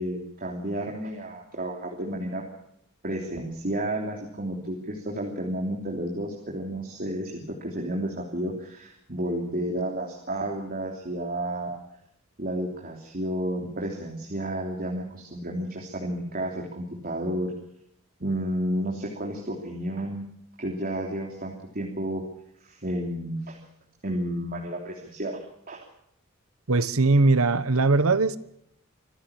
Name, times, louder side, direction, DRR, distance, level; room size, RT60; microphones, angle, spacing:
voice 1, 0.0-2.4 3.0-11.8 12.4-17.5 18.2-20.2 20.6-22.2 22.6-23.6 24.0-25.4 25.7-25.8, right 1 dB, 40° right, 3.2 m, -31 dB
voice 2, 26.7-28.4, right 3 dB, 70° right, 1.2 m, -20 dB
25.5 x 15.0 x 7.2 m
head